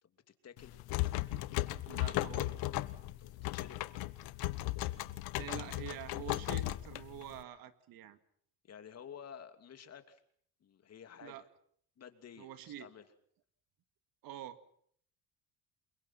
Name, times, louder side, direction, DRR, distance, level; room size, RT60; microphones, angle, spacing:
voice 1, 0.0-0.8 3.2-4.0 8.6-10.2 10.6-11.4 12.0-13.1, left 8 dB, 45° left, 8 dB, 2.9 m, -52 dB
sound 1, 0.6-7.4, left 17 dB, 80° left, 1.3 m, -36 dB
voice 2, 1.9-2.6 5.4-8.2 11.2-11.4 12.4-12.9 14.2-14.6, right 11 dB, 70° right, 10 dB, 2.3 m, -46 dB
29.0 x 23.0 x 5.9 m, 0.63 s
cardioid pair, 120°, 36 cm